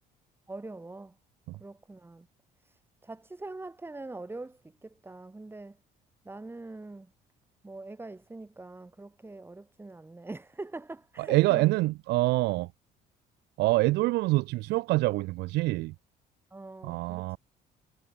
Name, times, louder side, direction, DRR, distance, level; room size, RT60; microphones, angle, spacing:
voice 1, 0.5-1.1 1.6-2.3 2.6-5.8 6.2-7.1 7.6-11.7 16.5-17.4, right 2 dB, 15° right, 2.7 m, -43 dB
voice 2, 11.2-12.7 13.6-15.9 16.8-17.4, right 20 dB, 90° right, 1.2 m, -26 dB
cardioid pair, 110°, 17 cm